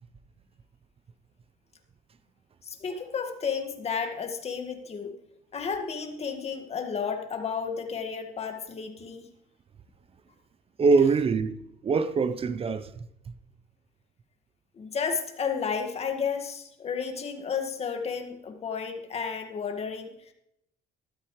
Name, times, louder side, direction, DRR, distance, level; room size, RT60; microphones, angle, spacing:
voice 1, 2.6-5.1 5.5-9.3 14.8-20.3, left 6 dB, 40° left, 1.8 m, -32 dB
voice 2, 10.8-13.3, right 4 dB, 35° right, 0.7 m, -24 dB
13.0 x 13.0 x 3.2 m
cardioid pair, 110°, 17 cm